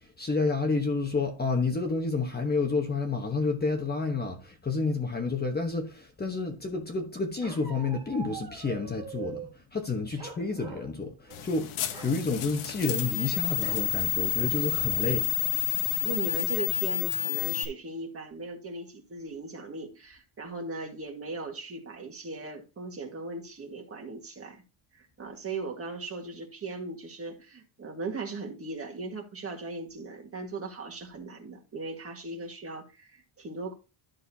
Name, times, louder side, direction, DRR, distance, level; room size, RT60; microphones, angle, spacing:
voice 1, 0.0-15.3, left 3 dB, 20° left, 1.1 m, -30 dB
Bark, 7.4-9.5 10.2-10.9 11.2-11.5 11.8-12.2 13.6-13.9 14.4-14.5 14.8-15.3, right 6 dB, 10° right, 2.3 m, -43 dB
sound 1, 11.3-17.6, left 14 dB, 85° left, 1.2 m, -29 dB
voice 2, 16.0-24.6 24.9-33.7, right 3 dB, 30° right, 1.7 m, -38 dB
12.0 x 6.5 x 2.8 m
cardioid pair, 155°, 48 cm